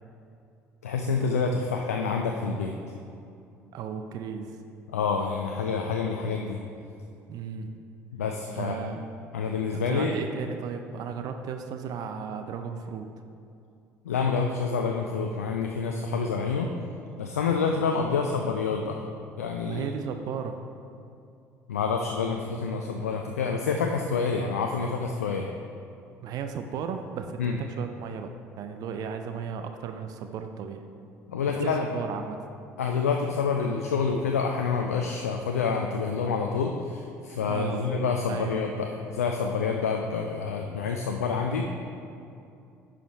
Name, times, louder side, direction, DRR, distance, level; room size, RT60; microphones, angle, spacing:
voice 1, 0.8-2.7 4.9-6.6 8.1-8.8 9.3-10.1 14.0-16.7 17.2-19.1 19.4-19.9 21.7-25.5 27.4-27.5 31.3-31.8 32.8-41.7, left 5 dB, 80° left, 2 dB, 0.5 m, -27 dB
voice 2, 3.7-4.5 7.3-7.7 8.6-9.0 9.7-13.1 19.6-20.6 26.2-28.3 28.6-30.8 31.6-32.4 37.4-37.9 38.3-38.6, right 7 dB, 55° right, 6 dB, 0.6 m, -35 dB
10.0 x 5.1 x 4.6 m, 2.5 s
figure-of-eight pair, 55°, 8 cm